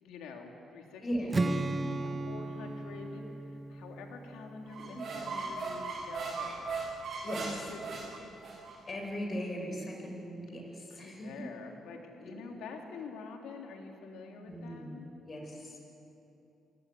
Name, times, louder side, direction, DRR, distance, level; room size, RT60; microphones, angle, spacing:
voice 1, 0.0-6.8 7.4-8.3 10.9-15.1, left 4 dB, 90° left, 2 dB, 3.2 m, -47 dB
voice 2, 1.0-1.4 4.9-5.3 7.2-7.6 8.9-11.3 12.2-12.3 14.5-15.0 15.2-15.8, equal, 35° left, 1 dB, 7.4 m, -38 dB
Strum, 1.3-5.4, right 2 dB, 30° right, 1.5 m, -36 dB
sound 1, 4.7-8.8, right 4 dB, 55° right, 7.9 m, -38 dB
27.0 x 20.0 x 8.5 m, 2.9 s
cardioid pair, 90°, 0 cm